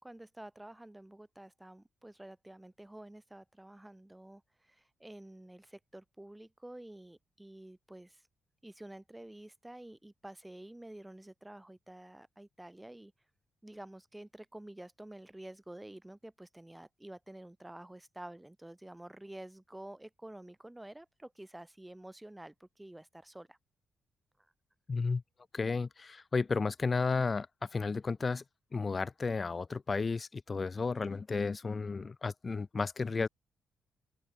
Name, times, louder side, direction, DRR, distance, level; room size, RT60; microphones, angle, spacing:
voice 1, 0.0-8.2 8.6-13.1 13.6-23.6, right 1 dB, 10° right, 4.5 m, -50 dB
voice 2, 24.9-25.2 25.5-28.4 28.7-33.3, left 4 dB, 30° left, 1.0 m, -33 dB
open air
cardioid pair, 105°, 0 cm